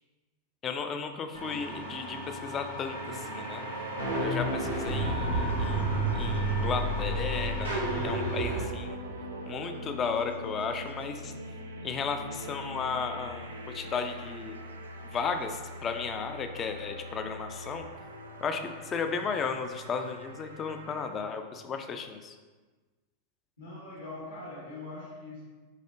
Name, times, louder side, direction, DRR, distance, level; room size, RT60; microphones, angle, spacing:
voice 1, 0.6-3.6 4.2-9.0 9.5-11.3 11.8-14.6 15.1-17.9 18.4-22.3, left 5 dB, 25° left, 7 dB, 0.3 m, -34 dB
sound 1, 1.3-8.6, right 1 dB, 90° left, 0.9 m, -31 dB
sound 2, 2.9-21.1, right 1 dB, 70° right, 0.3 m, -42 dB
voice 2, 23.6-25.4, left 2 dB, 70° left, -6 dB, 1.5 m, -42 dB
4.1 x 3.1 x 2.5 m, 1.3 s
figure-of-eight pair, 90°, 0 cm